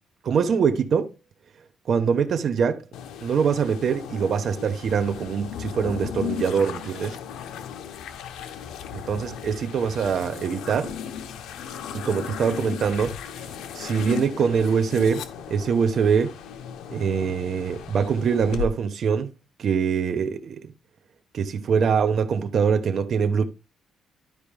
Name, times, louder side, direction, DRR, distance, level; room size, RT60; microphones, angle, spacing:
voice 1, 0.2-1.1 1.9-2.8 3.2-7.2 8.9-10.9 11.9-13.2 13.7-15.2 15.5-16.3 16.9-19.3 19.6-20.6 21.3-23.5, right 6 dB, 50° right, 0.9 m, -23 dB
sound 1, 2.9-18.7, left 8 dB, 85° left, 0.8 m, -36 dB
12.0 x 4.8 x 3.4 m
cardioid pair, 140°, 0 cm